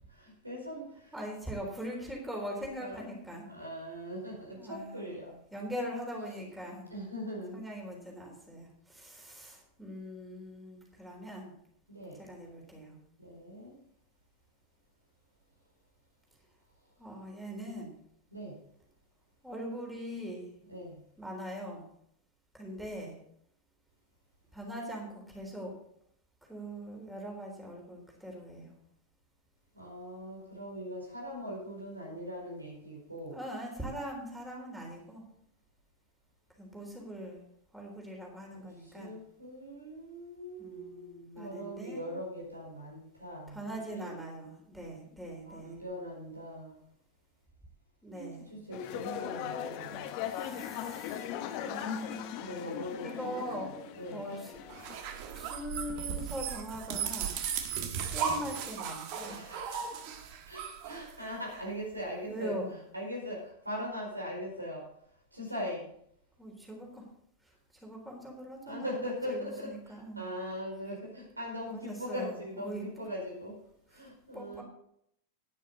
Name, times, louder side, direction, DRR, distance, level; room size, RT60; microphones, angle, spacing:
voice 1, 0.1-1.1 2.8-3.2 3.5-5.4 6.9-7.6 11.9-12.2 13.2-13.8 18.3-18.6 20.7-21.0 29.7-33.4 38.5-44.0 45.4-46.8 48.1-50.1 52.4-54.3 59.3-62.5 62.9-64.9 65.3-65.9 68.6-73.6 73.9-74.6, equal, 85° right, -1 dB, 4.7 m, -41 dB
voice 2, 1.1-3.5 4.5-5.1 5.5-6.9 7.5-11.5 12.2-13.0 17.0-17.9 19.4-20.5 21.2-21.9 22.5-23.2 24.5-25.8 26.5-28.7 33.3-35.2 36.6-37.4 37.7-39.2 40.6-42.1 43.5-45.8 48.0-48.4 50.2-51.3 51.6-52.7 53.0-54.5 55.3-57.4 58.1-59.4 62.3-62.7 66.4-67.1 67.8-69.0 69.3-70.2 71.7-73.0 73.9-74.0 74.3-74.6, equal, 5° right, -1 dB, 3.7 m, -41 dB
sound 1, 48.7-55.0, left 10 dB, 45° left, 1.1 m, -39 dB
sound 2, 54.7-61.6, right 7 dB, 45° right, 1.4 m, -36 dB
12.0 x 10.0 x 4.1 m, 0.71 s
figure-of-eight pair, 90°, 0 cm